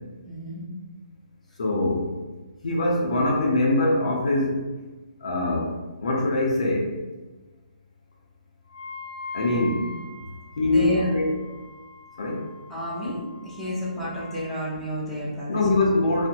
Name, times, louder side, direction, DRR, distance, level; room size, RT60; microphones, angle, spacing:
voice 1, 0.2-0.6 9.5-9.8 10.6-11.1 12.7-15.7, equal, ahead, -11 dB, 0.7 m, -31 dB
voice 2, 1.6-2.2 2.6-4.6 5.2-7.0 9.3-9.8 10.6-11.3 12.2-12.5 15.5-16.3, left 2 dB, 50° left, -2 dB, 0.4 m, -23 dB
Wind instrument woodwind instrument, 8.7-14.5, left 2 dB, 35° left, 0.8 m, -42 dB
2.5 x 2.0 x 2.5 m, 1.2 s
figure-of-eight pair, 135°, 4 cm